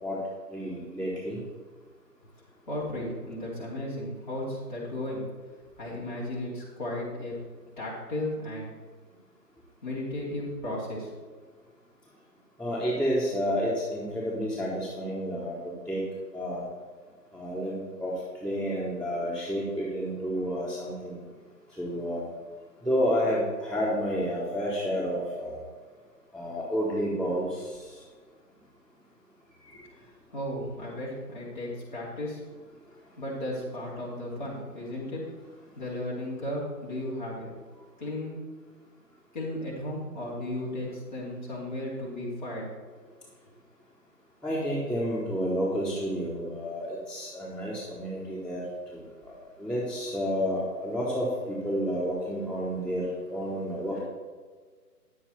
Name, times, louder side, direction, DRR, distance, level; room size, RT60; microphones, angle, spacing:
voice 1, 0.5-1.4 12.6-16.0 16.3-16.6 17.3-18.1 18.4-21.2 21.8-22.2 22.8-25.6 26.3-27.7 44.4-48.6 48.9-49.0 49.2-49.3 49.6-54.0, equal, 5° right, -22 dB, 1.4 m, -30 dB
voice 2, 2.7-5.2 5.8-7.4 7.8-8.7 9.8-11.1 29.7-32.4 33.2-35.2 35.7-37.5 38.0-38.4 39.3-42.7, left 1 dB, 30° left, -7 dB, 3.2 m, -35 dB
11.0 x 8.4 x 4.4 m, 1.5 s
hypercardioid pair, 175°, 50 cm